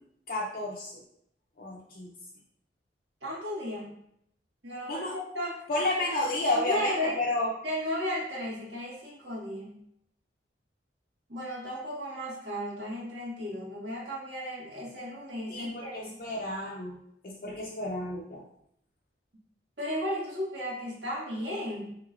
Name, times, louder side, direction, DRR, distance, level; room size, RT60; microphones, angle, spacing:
voice 1, 0.3-1.0 1.6-2.1 4.9-5.2 5.7-7.5 15.5-17.0 17.2-18.4, left 2 dB, 50° left, -4 dB, 0.5 m, -31 dB
voice 2, 3.2-3.9 4.6-5.6 6.0-6.1 6.5-7.1 7.6-9.8 11.3-16.2 19.8-21.9, equal, 80° right, -6 dB, 1.4 m, -34 dB
4.9 x 2.9 x 2.4 m, 0.74 s
head